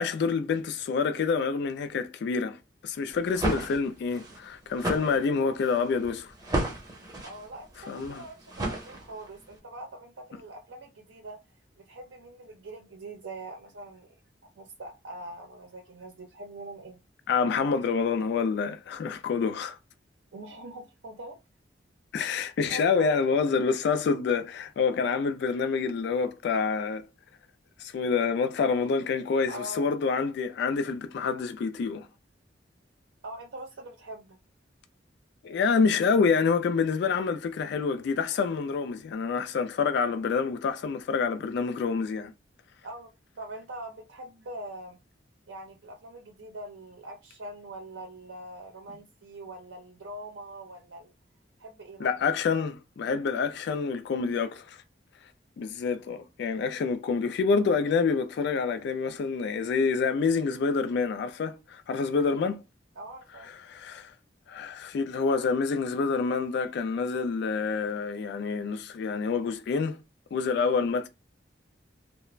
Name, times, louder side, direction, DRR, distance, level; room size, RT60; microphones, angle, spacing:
voice 1, 0.0-6.3 7.9-8.2 17.3-19.8 22.1-27.1 27.8-32.1 35.4-42.3 52.0-54.8 55.6-62.6 63.5-64.1 64.5-70.0 70.3-71.1, left 5 dB, 65° left, 0.3 m, -27 dB
sound 1, 3.1-9.4, right 1 dB, 20° right, 0.6 m, -34 dB
voice 2, 7.2-11.4 11.8-14.1 14.6-17.0 20.3-21.4 22.7-23.2 29.5-29.9 33.2-34.4 42.8-45.0 45.5-51.1 51.6-52.1 63.0-63.5, right 1 dB, 85° right, 0.5 m, -43 dB
2.3 x 2.0 x 3.1 m
head